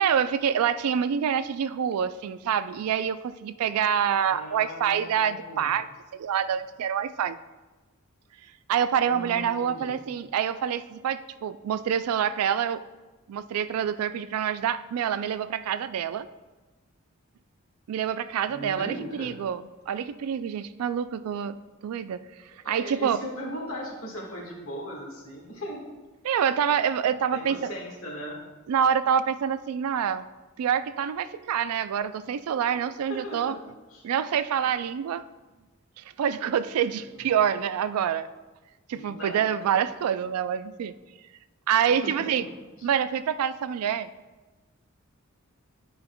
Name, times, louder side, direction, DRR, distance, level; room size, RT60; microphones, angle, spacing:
voice 1, 0.0-5.9 6.1-7.4 8.7-12.8 13.3-16.3 17.9-21.6 21.8-22.2 22.7-23.2 26.2-27.7 28.7-30.2 30.6-33.5 34.0-35.2 36.0-38.3 38.9-40.9 41.7-42.4 42.8-44.1, right 8 dB, 90° right, 14 dB, 0.3 m, -26 dB
voice 2, 4.2-5.7 9.1-10.0 18.5-19.3 22.6-25.9 27.3-28.4 33.1-33.6 33.9-34.0 37.1-37.3 38.9-39.7 41.9-42.4 42.8-42.9, equal, 70° left, -2 dB, 1.6 m, -38 dB
10.0 x 5.3 x 2.2 m, 1.2 s
head